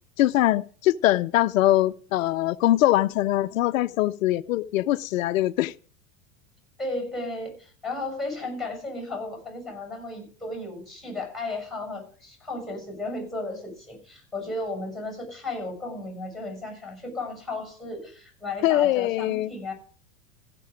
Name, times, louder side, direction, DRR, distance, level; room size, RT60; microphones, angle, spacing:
voice 1, 0.2-5.7 18.6-19.5, left 15 dB, 80° left, 0.6 m, -22 dB
voice 2, 6.8-19.7, left 2 dB, ahead, 6.6 m, -34 dB
15.5 x 6.8 x 4.9 m
hypercardioid pair, 95°, 39 cm